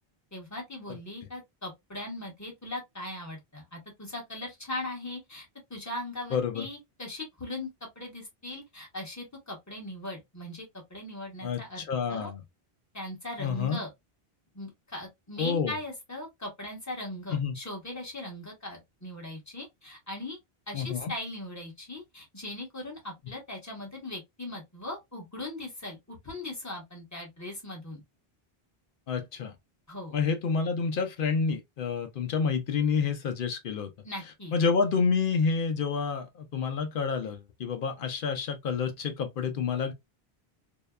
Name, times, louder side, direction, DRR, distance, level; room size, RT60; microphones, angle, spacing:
voice 1, 0.3-7.7 7.9-10.6 10.9-12.3 12.9-13.9 14.5-20.4 20.7-28.0 29.9-30.2 34.0-34.6, left 1 dB, 15° left, 1.0 m, -39 dB
voice 2, 6.3-6.7 11.4-12.4 13.4-13.8 15.4-15.7 17.3-17.6 20.7-21.1 29.1-29.5 30.1-33.9 34.5-39.9, left 5 dB, 65° left, 0.7 m, -28 dB
2.8 x 2.1 x 2.2 m
omnidirectional pair, 1.1 m